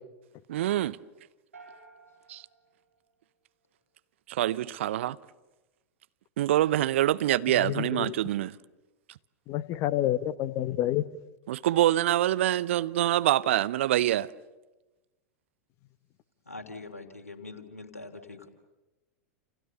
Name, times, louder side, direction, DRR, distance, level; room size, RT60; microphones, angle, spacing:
voice 1, 0.5-1.0 2.3-2.4 4.3-5.2 6.4-8.5 11.5-14.3, right 13 dB, 55° right, 0.9 m, -25 dB
sound 1, 1.5-3.8, right 4 dB, 75° right, 7.5 m, -55 dB
voice 2, 7.6-8.1 9.5-11.0, left 13 dB, 40° left, 1.3 m, -28 dB
voice 3, 16.5-18.5, left 3 dB, 80° left, 3.4 m, -43 dB
29.0 x 29.0 x 6.9 m
figure-of-eight pair, 90°, 8 cm